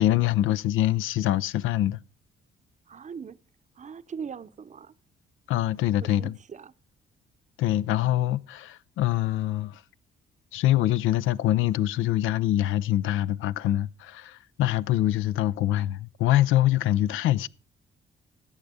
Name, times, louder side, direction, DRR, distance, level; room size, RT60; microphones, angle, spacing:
voice 1, 0.0-2.0 5.5-6.3 7.6-9.8 10.5-17.5, left 13 dB, 85° left, 0.5 m, -24 dB
voice 2, 2.9-3.4 3.8-4.9 6.0-6.7, right 6 dB, 35° right, 0.7 m, -40 dB
13.5 x 8.1 x 5.0 m
cardioid pair, 90°, 20 cm